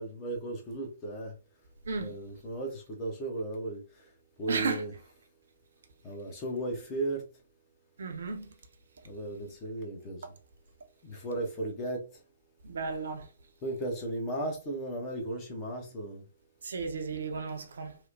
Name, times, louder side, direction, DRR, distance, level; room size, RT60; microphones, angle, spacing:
voice 1, 0.0-1.4 2.0-4.1 4.4-4.9 6.0-7.3 9.0-10.3 11.0-12.2 13.6-16.3, right 2 dB, 25° left, 0.8 m, -36 dB
voice 2, 1.9-2.2 4.5-4.9 8.0-8.5 12.6-13.3 16.6-18.0, right 4 dB, 60° right, 0.5 m, -34 dB
3.0 x 2.1 x 2.4 m
figure-of-eight pair, 125°, 0 cm